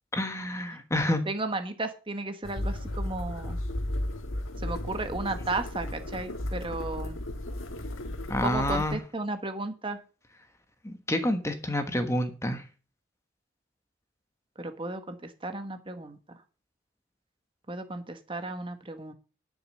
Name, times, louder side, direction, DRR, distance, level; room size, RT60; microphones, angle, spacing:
voice 1, 0.1-1.2 8.3-9.0 10.8-12.6, left 1 dB, 15° left, 7 dB, 1.2 m, -28 dB
voice 2, 1.3-3.6 4.6-7.2 8.4-10.0 14.6-16.4 17.7-19.1, right 2 dB, 25° right, 8 dB, 1.2 m, -34 dB
sound 1, 2.4-9.0, left 1 dB, 85° left, 1.4 m, -34 dB
11.0 x 6.4 x 6.6 m, 0.35 s
head